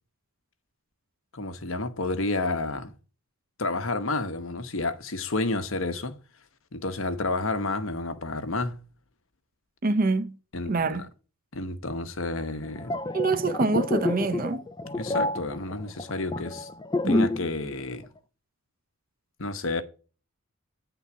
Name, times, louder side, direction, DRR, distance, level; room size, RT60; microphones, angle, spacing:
voice 1, 1.3-2.9 3.6-6.2 6.7-8.8 10.5-11.1 11.5-12.9 14.9-16.7 17.0-18.0 19.4-19.8, left 2 dB, 60° left, 1.0 m, -30 dB
voice 2, 9.8-10.4 10.7-11.1 13.1-14.7 17.0-17.2, right 3 dB, 40° right, 0.7 m, -25 dB
sound 1, 12.6-17.5 17.8-18.0, left 2 dB, 20° left, 0.4 m, -28 dB
9.6 x 3.9 x 6.9 m
head